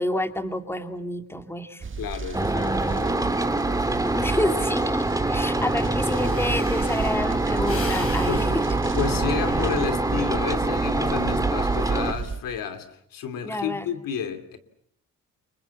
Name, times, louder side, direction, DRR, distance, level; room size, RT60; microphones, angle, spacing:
voice 1, 0.0-1.8 2.5-2.6 4.0-8.5 13.4-13.9, left 1 dB, 5° left, 2.6 m, -29 dB
sound 1, 1.8-12.4, right 5 dB, 40° right, 1.9 m, -31 dB
voice 2, 2.0-3.8 5.6-5.7 8.3-8.5 8.9-12.9 13.1-14.6, left 7 dB, 80° left, 2.9 m, -31 dB
sound 2, 2.3-12.1, right 2 dB, 10° right, 2.0 m, -25 dB
Breathing, 5.8-5.9 6.1-10.4 10.8-11.2, left 3 dB, 45° left, 6.3 m, -39 dB
29.5 x 24.5 x 7.2 m
cardioid pair, 75°, 33 cm